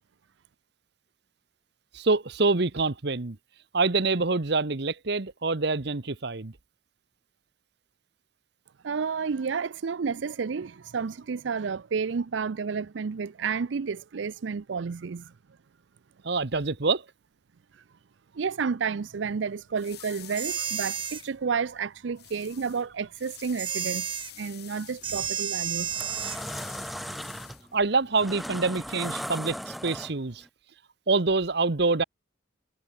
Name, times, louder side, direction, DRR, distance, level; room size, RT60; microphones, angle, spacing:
voice 1, 1.9-3.4 3.7-6.5 16.2-17.0 27.7-30.4 31.1-32.0, right 3 dB, 60° right, 1.1 m, -26 dB
voice 2, 8.8-15.3 18.3-24.1 24.4-25.9, right 5 dB, 75° right, 0.5 m, -31 dB
sound 1, 19.0-28.2, left 13 dB, 55° left, 3.0 m, -48 dB
sound 2, 20.4-21.2 23.6-24.3 25.0-26.4, right 8 dB, 25° right, 0.9 m, -31 dB
sound 3, 25.0-25.3 25.7-30.4, equal, ahead, 0.4 m, -37 dB
head